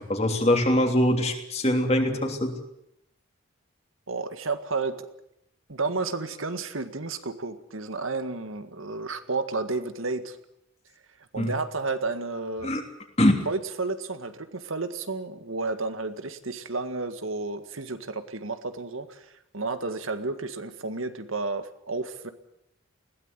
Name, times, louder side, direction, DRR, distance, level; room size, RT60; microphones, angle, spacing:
voice 1, 0.0-2.6 11.4-11.5 12.6-12.8 13.2-13.4, left 1 dB, 30° left, 4 dB, 3.2 m, -23 dB
voice 2, 4.1-5.0 5.7-10.4 11.3-12.7 13.5-22.3, right 3 dB, 85° right, 9 dB, 1.9 m, -31 dB
21.0 x 17.0 x 9.9 m, 0.78 s
head